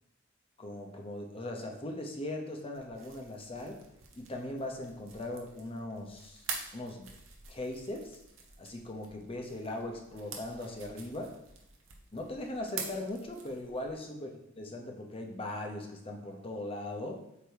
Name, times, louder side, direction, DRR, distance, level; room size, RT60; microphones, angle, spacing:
voice 1, 0.6-3.8 4.2-6.5 6.7-7.1 7.5-8.2 8.6-11.3 12.1-14.3 14.6-17.2, left 1 dB, 30° left, 2 dB, 0.9 m, -39 dB
sound 1, 2.7-13.9, right 5 dB, 75° right, 1.1 m, -47 dB
8.1 x 3.0 x 4.7 m, 0.82 s
head